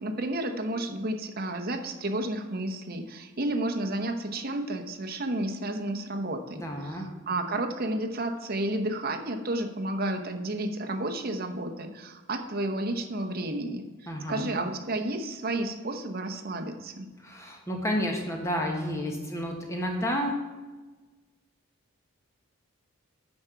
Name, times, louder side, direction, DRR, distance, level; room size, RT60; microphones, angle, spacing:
voice 1, 0.0-17.1, right 1 dB, 45° right, 5 dB, 0.8 m, -31 dB
voice 2, 6.6-7.1 14.1-14.5 17.2-20.5, equal, 15° left, 1 dB, 1.2 m, -31 dB
9.5 x 4.7 x 6.8 m, 1.2 s
head